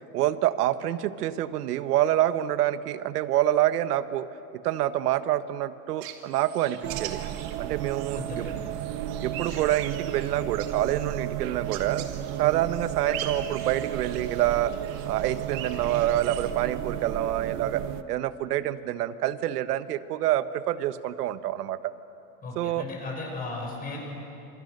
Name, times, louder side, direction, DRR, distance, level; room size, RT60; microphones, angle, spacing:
voice 1, 0.0-4.3 4.5-7.2 7.6-8.5 9.2-12.1 12.4-14.7 15.1-17.8 18.1-21.9 22.5-22.8, right 13 dB, 80° right, 12 dB, 1.3 m, -27 dB
sound 1, 6.0-16.5, right 10 dB, 60° right, 2.5 m, -42 dB
sound 2, 6.8-18.0, right 11 dB, 35° right, 0.9 m, -33 dB
voice 2, 8.1-8.6 22.4-24.1, left 3 dB, 20° left, 0 dB, 6.0 m, -36 dB
28.5 x 27.0 x 6.6 m, 2.9 s
supercardioid pair, 160°, 46 cm